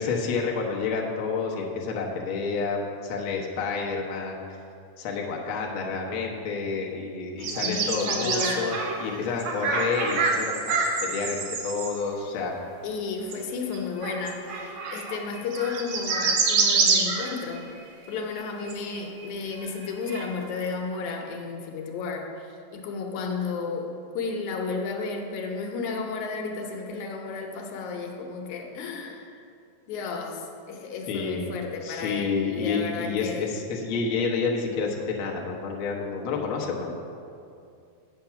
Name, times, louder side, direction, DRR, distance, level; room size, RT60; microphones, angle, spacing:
voice 1, 0.0-4.6 5.0-12.5 31.1-31.5 31.8-36.9, left 4 dB, 60° left, -1 dB, 1.4 m, -29 dB
sound 1, 7.4-11.9 13.3-13.4 13.7-17.8 18.4-18.5 18.7-20.3, right 4 dB, 75° right, 2.1 m, -27 dB
voice 2, 7.6-8.8 12.8-17.7 18.1-22.3 22.7-29.4 29.9-33.5, left 4 dB, 75° left, 1 dB, 2.2 m, -33 dB
8.2 x 7.6 x 5.7 m, 2.5 s
omnidirectional pair, 3.5 m